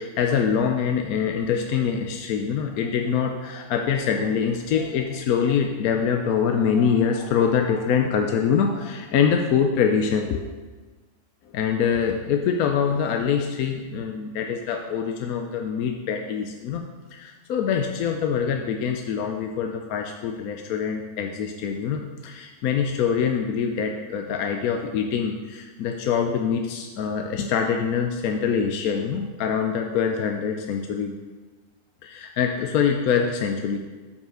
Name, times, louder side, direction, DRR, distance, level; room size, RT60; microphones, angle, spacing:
voice 1, 0.0-10.5 11.5-16.8 17.1-31.1 32.0-33.8, left 7 dB, 70° left, 4 dB, 1.0 m, -24 dB
6.9 x 5.7 x 6.2 m, 1.3 s
omnidirectional pair, 1.7 m